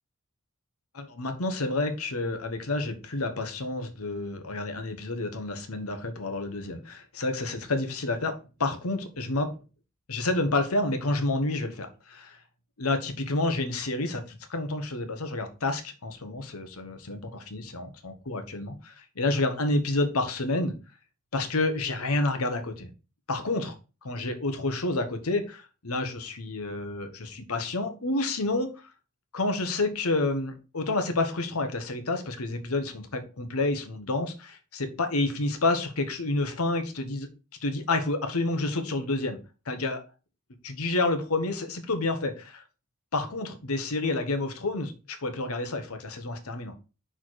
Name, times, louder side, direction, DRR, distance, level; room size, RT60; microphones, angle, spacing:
voice 1, 0.9-9.5 10.1-12.4 12.8-20.7 21.3-22.9 23.3-23.7 24.0-28.7 29.3-37.3 37.6-39.4 39.7-40.0 40.6-42.6 43.1-46.7, left 2 dB, 75° left, 7 dB, 1.2 m, -29 dB
5.8 x 4.5 x 4.6 m, 0.32 s
head